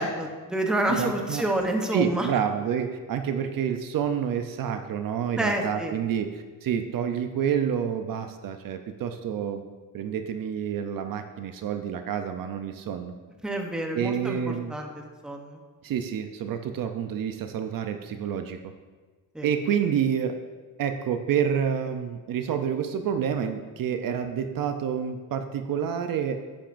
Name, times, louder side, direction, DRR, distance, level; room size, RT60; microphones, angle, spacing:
voice 1, 0.0-2.3 5.4-5.9 13.4-14.9 15.2-15.6 19.3-19.5, right 1 dB, ahead, 2 dB, 0.8 m, -28 dB
voice 2, 0.9-1.4 1.9-9.6 9.9-13.1 13.9-14.7 15.8-18.6 19.4-20.4 20.8-26.4, right 8 dB, 60° right, 7 dB, 0.6 m, -28 dB
10.0 x 8.7 x 2.6 m, 1.4 s
cardioid pair, 155°, 39 cm